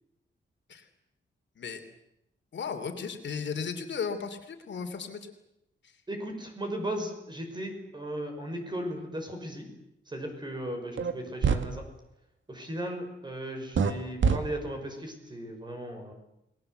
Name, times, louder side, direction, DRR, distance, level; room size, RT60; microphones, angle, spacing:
voice 1, 2.5-5.3 5.8-5.9, left 6 dB, 65° left, 6 dB, 3.1 m, -35 dB
voice 2, 6.1-9.7 10.1-11.8 12.5-16.1, right 1 dB, 20° right, 4 dB, 5.9 m, -36 dB
sound 1, 11.0-11.1 11.4-11.6 13.7-13.9 14.2-14.4, right 6 dB, 70° right, 2.1 m, -23 dB
29.5 x 20.5 x 8.0 m, 0.84 s
wide cardioid pair, 165°, 20 cm